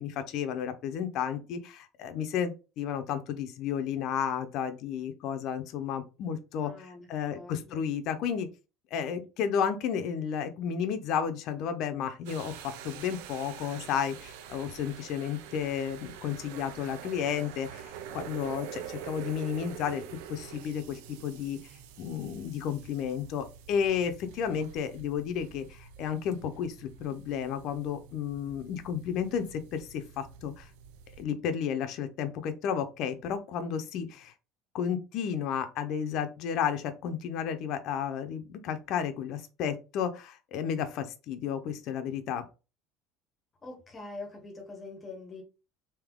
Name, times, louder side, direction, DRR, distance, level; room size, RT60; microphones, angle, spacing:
voice 1, 0.0-6.7 7.1-8.5 8.9-20.0 20.3-21.7 22.0-30.7 31.2-34.3 34.7-42.4, left 8 dB, 50° left, 0.5 m, -32 dB
voice 2, 6.6-7.9 43.6-45.4, left 3 dB, 20° left, 0.8 m, -44 dB
sound 1, 12.3-31.3, right 9 dB, 85° right, 0.5 m, -46 dB
3.5 x 2.7 x 3.6 m
cardioid pair, 155°, 0 cm